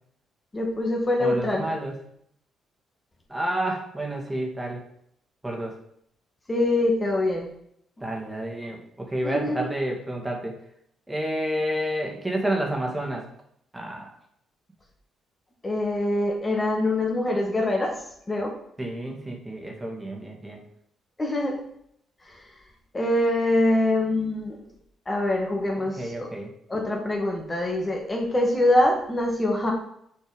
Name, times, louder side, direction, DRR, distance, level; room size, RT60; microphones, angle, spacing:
voice 1, 0.5-1.7 6.5-7.5 8.0-8.1 9.2-9.7 15.6-18.0 18.3-18.5 21.2-21.6 22.3-22.4 22.9-24.6 25.1-26.3 26.7-29.7, left 1 dB, 30° left, 0 dB, 1.9 m, -24 dB
voice 2, 1.2-2.0 3.3-4.8 5.4-5.8 8.0-10.6 11.1-13.3 13.7-14.1 18.8-20.6 25.8-26.5, right 1 dB, 15° right, 0 dB, 2.1 m, -30 dB
6.7 x 4.4 x 5.2 m, 0.72 s
hypercardioid pair, 50°, 0 cm